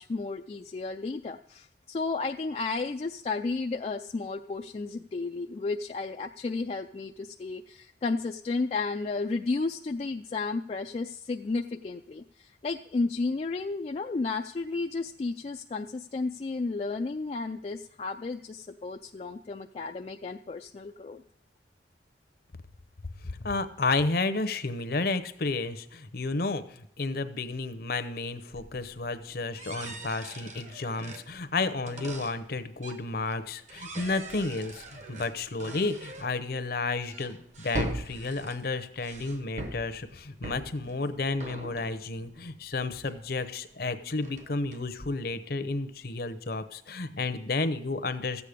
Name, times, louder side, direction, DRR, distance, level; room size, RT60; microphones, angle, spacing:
voice 1, 0.0-21.2, left 3 dB, 35° left, 4 dB, 0.3 m, -33 dB
voice 2, 23.2-48.5, left 3 dB, 55° left, 12 dB, 0.8 m, -32 dB
sound 1, 28.5-33.4 33.7-43.8 44.1-45.4, right 1 dB, 40° right, 1.0 m, -41 dB
13.5 x 8.4 x 5.1 m, 0.73 s
head